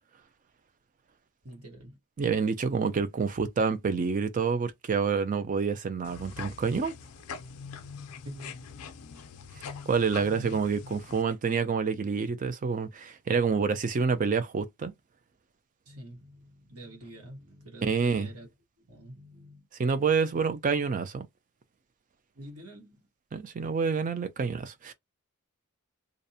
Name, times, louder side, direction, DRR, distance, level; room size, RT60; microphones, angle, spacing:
voice 1, 1.4-2.0 8.2-8.8 15.9-18.5 18.8-19.7 22.3-23.1, right 1 dB, 80° right, 1.1 m, -46 dB
voice 2, 2.2-6.9 9.9-14.9 17.8-18.3 19.8-21.3 23.3-24.9, right 5 dB, 35° right, 0.4 m, -28 dB
sound 1, 6.0-11.2, left 6 dB, 75° left, 0.5 m, -43 dB
2.5 x 2.0 x 2.7 m
head